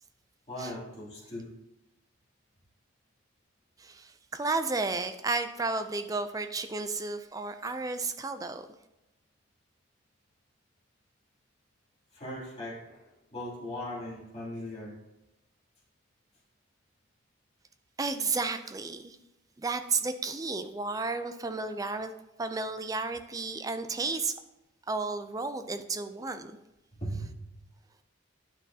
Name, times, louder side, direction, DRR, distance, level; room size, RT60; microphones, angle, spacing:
voice 1, 0.5-1.5 12.1-14.9 27.0-27.6, equal, 30° left, -7 dB, 2.7 m, -39 dB
voice 2, 3.8-8.7 18.0-19.2 19.6-22.1 22.4-24.3 24.9-26.5, right 3 dB, 15° right, 9 dB, 0.3 m, -32 dB
10.5 x 6.0 x 2.8 m, 0.95 s
head